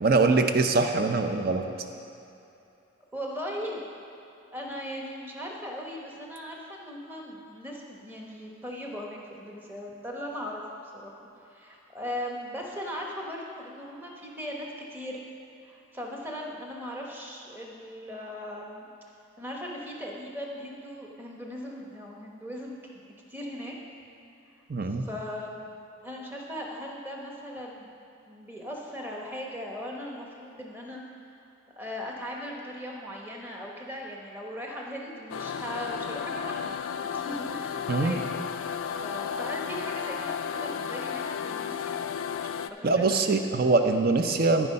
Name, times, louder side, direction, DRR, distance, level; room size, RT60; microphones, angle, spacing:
voice 1, 0.0-1.6 24.7-25.0 37.9-38.2 42.8-44.7, right 3 dB, 50° right, 6 dB, 0.6 m, -23 dB
voice 2, 3.1-3.9 4.5-10.6 10.9-11.2 11.5-15.2 15.6-18.9 19.4-23.7 24.9-25.7 26.0-27.9 28.3-31.0 31.8-42.0 42.7-43.4, equal, 10° right, -2 dB, 1.0 m, -38 dB
sound 1, 35.3-42.7, left 7 dB, 85° left, 0.3 m, -33 dB
14.0 x 4.7 x 5.4 m, 2.8 s
head